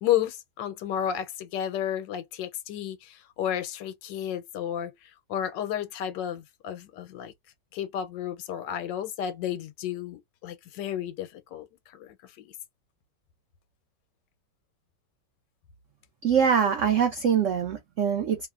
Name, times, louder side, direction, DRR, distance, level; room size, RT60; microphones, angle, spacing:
voice 1, 0.0-7.3 7.7-12.5, left 10 dB, 80° left, 1.3 m, -32 dB
voice 2, 16.2-18.5, right 7 dB, 80° right, 0.6 m, -23 dB
3.0 x 2.1 x 2.3 m
omnidirectional pair, 2.0 m